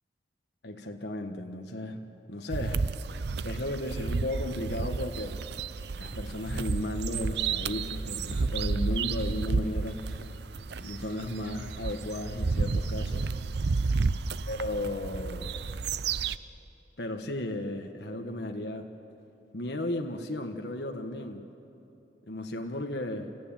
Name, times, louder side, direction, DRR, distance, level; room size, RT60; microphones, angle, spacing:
voice 1, 0.6-2.9 3.4-5.4 6.0-10.0 10.8-13.3 14.5-15.6 17.0-18.9 19.5-21.5 22.3-23.3, left 1 dB, 70° left, 4 dB, 1.4 m, -35 dB
sound 1, 2.5-16.4, right 4 dB, 70° right, 0.6 m, -31 dB
sound 2, 6.0-13.2, equal, 50° right, 4.4 m, -47 dB
27.5 x 16.0 x 8.9 m, 2.8 s
head